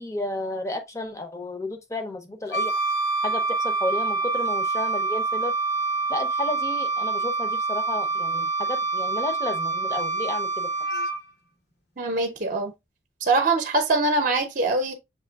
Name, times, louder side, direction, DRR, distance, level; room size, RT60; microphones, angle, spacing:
voice 1, 0.0-2.7 3.2-5.5 6.1-10.7, left 1 dB, 15° left, 0.7 m, -32 dB
Wind instrument woodwind instrument, 2.5-11.2, right 3 dB, 60° left, 0.9 m, -26 dB
voice 2, 12.0-12.7 13.2-14.9, right 2 dB, 45° right, 0.7 m, -23 dB
6.6 x 2.9 x 2.2 m
head